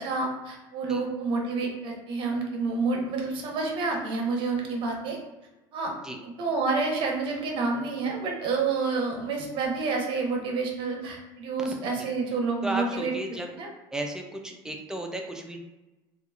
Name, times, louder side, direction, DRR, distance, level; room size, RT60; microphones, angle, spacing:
voice 1, 0.0-5.2 5.7-5.9 6.2-13.1 13.6-13.7, right 4 dB, 55° right, 0 dB, 0.8 m, -29 dB
voice 2, 11.6-12.1 12.6-13.5 13.9-15.6, right 1 dB, 5° right, 2 dB, 0.4 m, -34 dB
2.8 x 2.4 x 2.4 m, 1.1 s
supercardioid pair, 110°, 11 cm